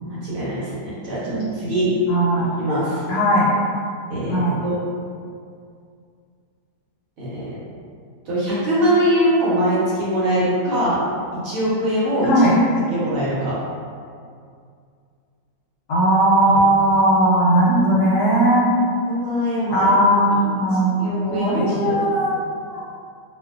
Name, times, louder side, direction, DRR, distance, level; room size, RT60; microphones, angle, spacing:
voice 1, 0.0-1.8 2.4-3.0 4.1-4.7 7.2-7.6 8.3-11.0 11.3-12.3 12.9-13.5 16.5-16.6 19.1-19.9 21.0-21.9, equal, 65° right, -9 dB, 1.0 m, -22 dB
voice 2, 2.1-2.6 3.1-3.5 4.3-4.6 12.2-12.6 15.9-18.7 19.7-22.4 22.7-22.8, right 1 dB, 70° left, -6 dB, 1.1 m, -18 dB
2.5 x 2.4 x 2.4 m, 2.3 s
omnidirectional pair, 1.8 m